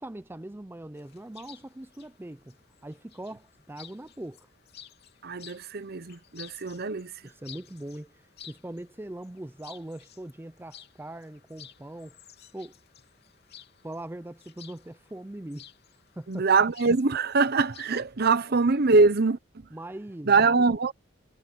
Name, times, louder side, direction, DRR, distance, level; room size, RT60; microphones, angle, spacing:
voice 1, 0.0-2.5 2.8-4.5 7.2-8.1 8.4-12.2 12.5-12.7 13.8-15.6 16.2-16.4 19.7-20.6, right 1 dB, 10° right, 0.5 m, -41 dB
Chirp tweet, 0.9-18.0, left 10 dB, 55° left, 3.2 m, -53 dB
voice 2, 5.2-7.1 16.3-19.7 20.2-20.9, right 4 dB, 50° right, 0.9 m, -23 dB
head